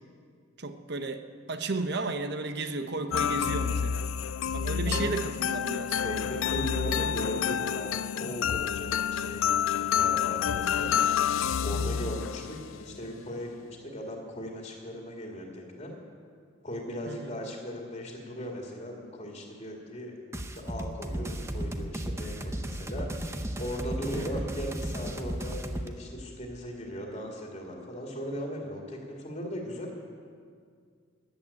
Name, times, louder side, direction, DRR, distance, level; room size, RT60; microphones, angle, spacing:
voice 1, 0.6-1.2 1.5-4.1 4.5-6.0 11.7-12.1 17.1-17.4 24.2-24.5, right 3 dB, 55° right, 8 dB, 1.0 m, -34 dB
sound 1, 3.1-12.8, left 8 dB, 85° left, 0.4 m, -29 dB
voice 2, 6.0-10.9 11.6-15.9 16.6-20.1 20.5-23.1 23.6-29.9, equal, 30° left, 0 dB, 2.3 m, -38 dB
sound 2, 20.3-25.9, right 1 dB, 15° right, 0.8 m, -35 dB
13.5 x 11.0 x 8.6 m, 2.1 s
head